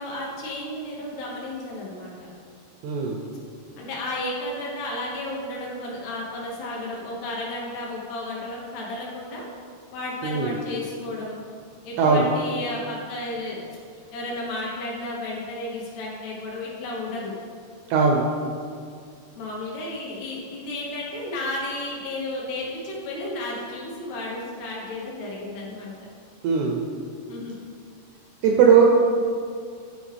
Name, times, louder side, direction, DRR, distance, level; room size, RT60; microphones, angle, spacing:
voice 1, 0.0-2.1 3.8-9.5 9.9-11.3 11.8-13.8 14.1-17.3 19.3-25.9 27.3-27.6, left 1 dB, 70° left, -4 dB, 3.1 m, -33 dB
voice 2, 2.8-3.2 10.2-10.5 12.0-12.3 17.9-18.3 26.4-26.8 28.4-28.9, right 6 dB, 80° right, 0 dB, 2.3 m, -18 dB
11.5 x 5.2 x 3.4 m, 2.3 s
omnidirectional pair, 5.1 m